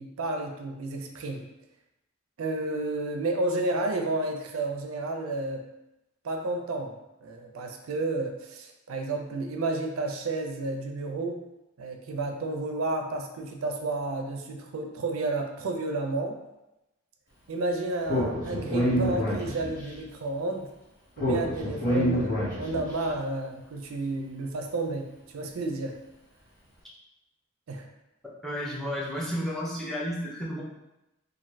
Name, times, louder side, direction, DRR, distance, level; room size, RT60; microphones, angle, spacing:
voice 1, 0.0-1.4 2.4-5.6 6.2-7.0 7.2-11.4 11.8-16.4 17.5-20.7 21.2-25.9 27.7-27.9, right 2 dB, 90° right, 4 dB, 0.4 m, -31 dB
Speech, 18.1-19.9 21.2-22.9, equal, 45° left, 1.2 m, -27 dB
voice 2, 28.4-30.6, equal, ahead, -6 dB, 0.6 m, -32 dB
2.5 x 2.5 x 3.1 m, 0.94 s
head